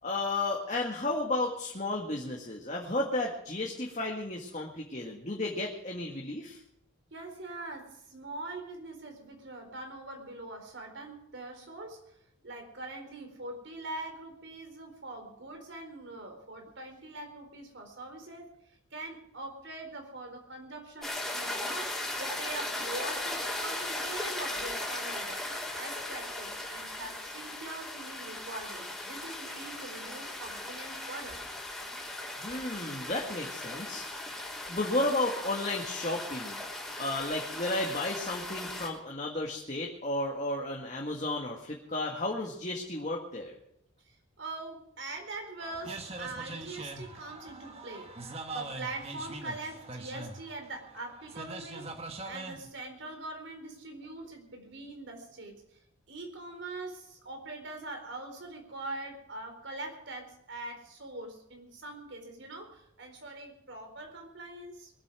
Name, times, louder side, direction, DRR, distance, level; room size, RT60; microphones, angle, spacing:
voice 1, 0.0-6.6 32.4-34.2 34.7-36.6 37.0-43.5, left 2 dB, 35° left, -1 dB, 1.8 m, -33 dB
voice 2, 7.1-12.2 12.4-25.4 25.7-31.4 44.1-51.9 52.2-55.6 56.1-64.9, right 2 dB, 65° right, 4 dB, 4.2 m, -43 dB
sound 1, 21.0-38.9, left 1 dB, ahead, 3.5 m, -38 dB
sound 2, 45.6-52.7, right 2 dB, 30° right, 1.4 m, -42 dB
22.5 x 8.3 x 6.2 m, 0.77 s
head